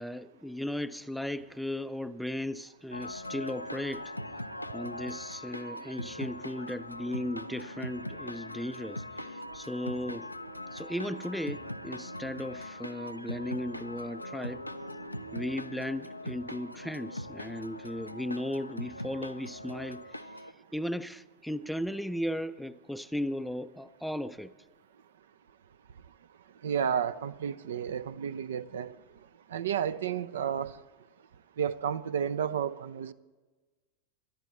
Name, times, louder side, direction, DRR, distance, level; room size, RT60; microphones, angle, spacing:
voice 1, 0.0-4.1 4.7-10.3 10.7-14.6 15.3-20.5 20.7-24.5, left 1 dB, ahead, 0.5 m, -36 dB
sound 1, 2.9-20.5, left 1 dB, 90° left, 0.5 m, -41 dB
voice 2, 26.6-28.9 29.5-30.7 31.6-33.1, right 8 dB, 60° right, 0.5 m, -31 dB
23.0 x 11.0 x 3.1 m
figure-of-eight pair, 90°, 0 cm